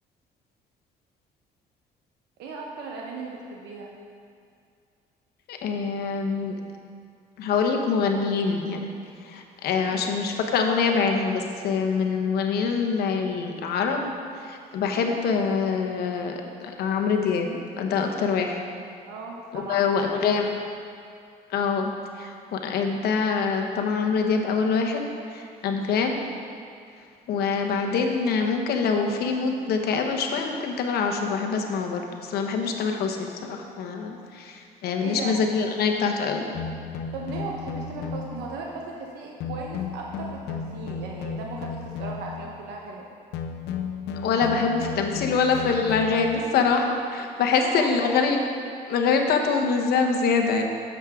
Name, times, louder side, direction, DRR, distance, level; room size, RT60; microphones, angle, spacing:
voice 1, 2.4-3.9 9.9-10.1 19.1-20.3 32.7-32.9 35.0-35.4 37.1-43.1 47.5-48.3, right 4 dB, 85° right, -1 dB, 1.0 m, -37 dB
voice 2, 5.5-6.6 7.4-8.9 9.2-14.1 14.4-18.6 19.5-20.6 21.5-21.9 22.2-26.3 27.3-36.4 44.2-48.4 48.9-50.6, left 5 dB, 70° left, 3 dB, 1.0 m, -25 dB
sound 1, 36.5-38.5 39.4-42.5 43.3-46.5, left 6 dB, 85° left, 0.7 m, -34 dB
10.5 x 7.3 x 3.6 m, 2.3 s
cardioid pair, 110°, 17 cm